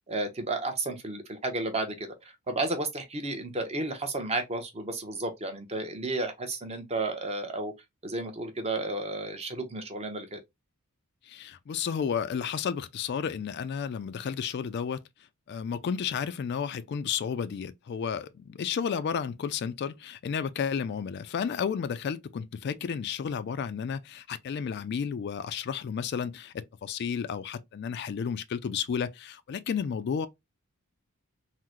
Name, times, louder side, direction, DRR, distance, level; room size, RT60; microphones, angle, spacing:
voice 1, 0.1-7.7 8.0-10.4, right 2 dB, 30° right, 0.7 m, -32 dB
voice 2, 11.2-15.0 15.5-30.3, left 7 dB, 50° left, 0.3 m, -32 dB
3.7 x 2.1 x 2.9 m
head